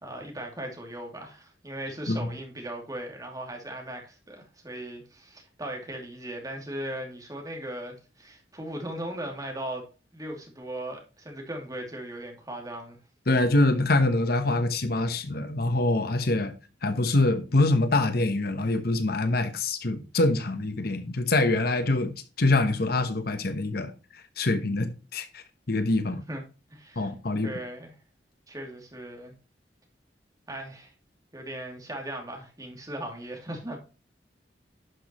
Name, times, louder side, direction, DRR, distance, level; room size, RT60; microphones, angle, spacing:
voice 1, 0.0-9.9 10.1-13.0 26.1-26.4 26.7-27.1 27.4-27.9 28.5-29.3 30.5-30.9 31.3-33.8, right 1 dB, 20° right, 2.6 m, -38 dB
voice 2, 13.3-16.5 16.8-22.1 22.4-23.9 24.4-26.2 27.0-27.5, left 2 dB, 60° left, 1.0 m, -25 dB
11.5 x 6.2 x 3.0 m
head